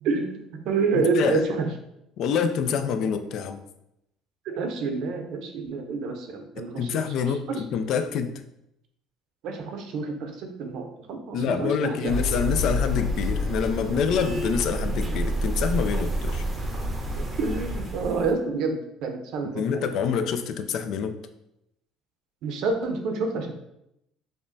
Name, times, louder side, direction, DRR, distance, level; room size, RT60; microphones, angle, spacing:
voice 1, 0.0-1.7 4.5-7.0 7.5-7.7 9.4-12.1 17.1-19.9 22.4-23.5, right 4 dB, 65° right, 5 dB, 0.6 m, -28 dB
voice 2, 0.9-1.4 2.2-3.6 6.6-8.4 11.3-16.4 19.5-21.2, left 7 dB, 60° left, 9 dB, 0.3 m, -26 dB
sound 1, 12.1-18.3, equal, 25° right, 0.6 m, -28 dB
5.0 x 2.2 x 2.6 m, 0.82 s
cardioid pair, 110°, 0 cm